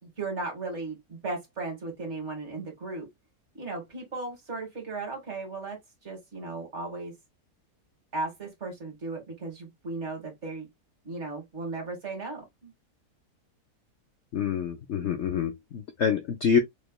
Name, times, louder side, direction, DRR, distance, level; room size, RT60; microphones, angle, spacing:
voice 1, 0.0-3.1 3.5-7.1 8.1-10.7 11.0-12.7, right 3 dB, 45° right, 2.2 m, -36 dB
voice 2, 14.3-16.6, left 7 dB, 65° left, 0.7 m, -26 dB
4.8 x 3.3 x 2.2 m
omnidirectional pair, 1.7 m